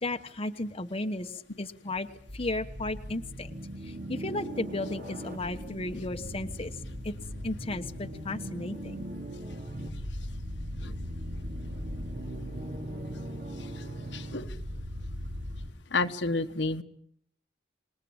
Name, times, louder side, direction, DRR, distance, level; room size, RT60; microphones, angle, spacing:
voice 1, 0.0-2.1 2.3-3.5 3.8-6.8 7.0-7.1 7.4-9.1, left 2 dB, 30° left, 6 dB, 1.2 m, -34 dB
sound 1, 2.0-15.7, equal, 50° right, 3.2 m, -38 dB
voice 2, 14.1-14.5 15.9-16.8, left 3 dB, 70° left, 8 dB, 1.3 m, -30 dB
27.0 x 20.5 x 8.8 m, 0.68 s
head